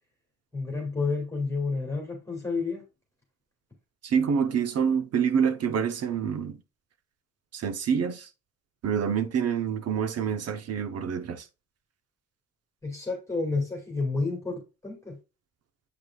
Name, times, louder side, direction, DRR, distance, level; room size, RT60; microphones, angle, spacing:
voice 1, 0.5-2.8 12.8-15.2, left 3 dB, 10° left, 2.3 m, -30 dB
voice 2, 4.0-6.6 7.5-8.3 8.8-11.4, right 7 dB, 55° right, 0.9 m, -27 dB
8.0 x 4.9 x 2.4 m
cardioid pair, 90°, 30 cm